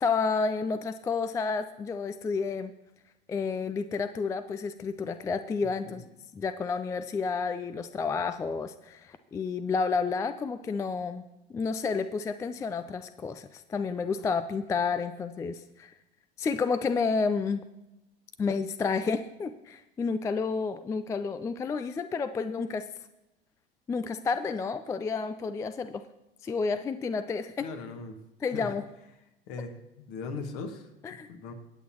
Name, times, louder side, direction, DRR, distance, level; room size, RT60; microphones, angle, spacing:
voice 1, 0.0-2.7 3.3-6.0 6.3-11.3 11.5-15.9 16.4-17.6 18.4-22.9 23.9-26.0 26.4-27.6 28.4-28.8 31.0-31.3, left 5 dB, 10° left, 11 dB, 0.3 m, -30 dB
voice 2, 27.6-28.2 28.5-28.7 29.5-30.9 31.3-31.5, left 4 dB, 50° left, 6 dB, 1.8 m, -39 dB
23.5 x 8.5 x 3.0 m, 0.94 s
figure-of-eight pair, 80°, 29 cm